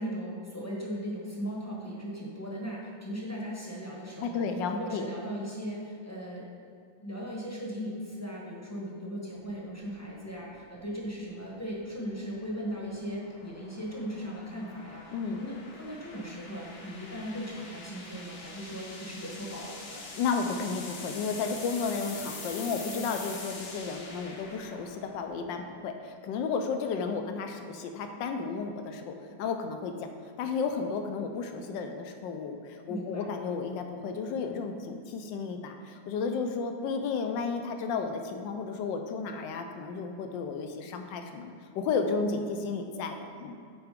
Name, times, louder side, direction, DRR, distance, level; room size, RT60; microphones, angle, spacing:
voice 1, 0.0-6.8 7.0-20.1 32.9-33.3, equal, 10° left, -4 dB, 0.8 m, -38 dB
voice 2, 4.2-5.1 15.1-15.4 20.2-29.1 29.4-29.9 30.4-43.6, left 5 dB, 85° left, 6 dB, 1.3 m, -33 dB
sound 1, 9.4-25.6, left 3 dB, 55° left, 0.9 m, -45 dB
7.0 x 4.6 x 5.1 m, 2.3 s
omnidirectional pair, 2.0 m